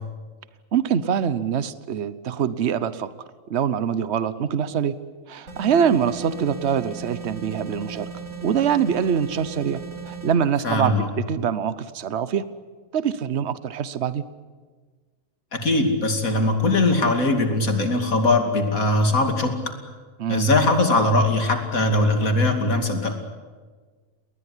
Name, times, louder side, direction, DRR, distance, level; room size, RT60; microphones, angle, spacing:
voice 1, 0.7-3.1 3.5-4.9 5.3-8.1 8.4-12.5 12.9-14.2 20.2-20.5, right 7 dB, 55° right, 15 dB, 1.2 m, -24 dB
sound 1, 5.5-10.3, right 5 dB, 80° right, 5.5 m, -37 dB
voice 2, 10.6-11.1 15.5-19.5 20.3-23.1, left 2 dB, 80° left, 6 dB, 3.1 m, -20 dB
20.5 x 20.0 x 9.9 m, 1.4 s
omnidirectional pair, 1.4 m